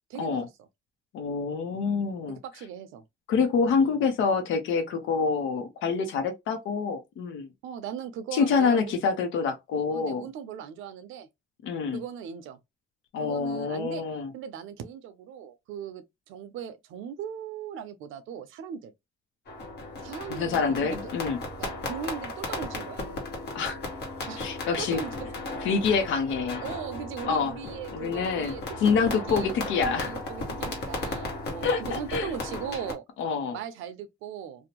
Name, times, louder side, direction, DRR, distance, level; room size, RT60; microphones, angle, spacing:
voice 1, 0.1-0.4 2.3-3.0 3.8-4.0 7.6-8.9 9.9-11.3 11.9-12.6 13.2-14.0 14.3-18.9 20.0-20.8 21.6-23.0 24.3-25.1 26.6-33.0 33.5-34.7, right 8 dB, 90° right, 0.5 m, -39 dB
voice 2, 1.1-2.4 3.3-7.5 8.3-10.2 11.6-12.0 13.1-14.3 20.3-21.4 23.5-23.8 24.4-25.0 25.6-26.6 27.3-27.5 27.9-28.5 28.8-30.1 31.6-32.3 33.2-33.6, left 5 dB, 80° left, 0.6 m, -26 dB
sound 1, 19.5-32.9, left 2 dB, 60° left, 1.1 m, -36 dB
2.6 x 2.0 x 2.9 m
cardioid pair, 90°, 20 cm